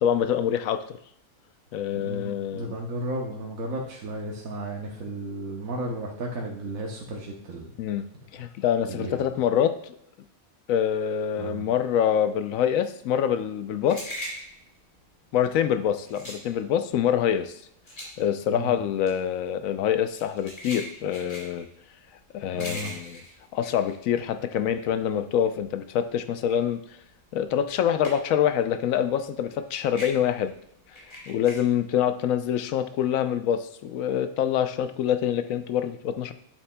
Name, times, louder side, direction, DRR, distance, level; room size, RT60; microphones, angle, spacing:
voice 1, 0.0-1.0 1.7-2.8 7.8-8.0 8.3-9.9 10.7-14.1 15.3-17.6 18.2-21.7 22.3-23.2 23.5-26.8 27.3-30.5 31.3-36.3, left 9 dB, 80° left, 10 dB, 1.0 m, -25 dB
voice 2, 1.9-7.7 8.9-9.3 11.4-11.7 18.5-18.8 22.5-22.9, right 1 dB, 85° right, -1 dB, 1.4 m, -34 dB
sound 1, 13.6-24.7 25.1-28.5 28.8-31.6, equal, 25° left, 2.4 m, -41 dB
8.4 x 7.3 x 2.2 m, 0.73 s
omnidirectional pair, 1.4 m